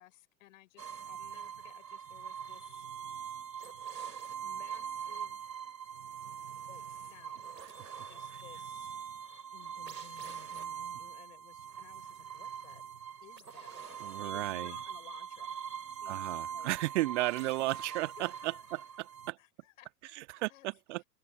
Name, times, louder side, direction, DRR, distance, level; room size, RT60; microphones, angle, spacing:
voice 1, 0.0-2.9 4.4-5.7 6.7-7.6 8.1-8.9 9.5-12.8 13.2-14.0 14.2-15.6 16.0-16.7 17.4-19.0 19.4-20.7, left 16 dB, 50° left, 6.1 m, -58 dB
sound 1, 0.8-19.3, right 8 dB, 75° right, 5.4 m, -43 dB
voice 2, 14.0-14.8 16.1-19.4 20.1-21.0, right 19 dB, 45° right, 1.8 m, -34 dB
open air
figure-of-eight pair, 100°, 50 cm